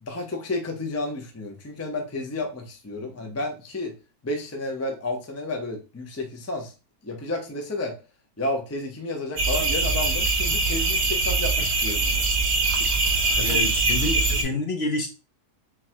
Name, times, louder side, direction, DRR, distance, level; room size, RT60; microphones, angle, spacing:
voice 1, 0.0-3.9 4.2-6.7 7.0-8.0 8.4-12.3 13.4-13.6 14.3-14.6, left 2 dB, 20° left, 3 dB, 0.4 m, -31 dB
sound 1, 9.4-14.4, right 3 dB, 30° right, 0.6 m, -23 dB
voice 2, 13.4-15.1, left 2 dB, 55° left, 4 dB, 0.8 m, -28 dB
3.9 x 2.5 x 4.3 m, 0.30 s
omnidirectional pair, 1.6 m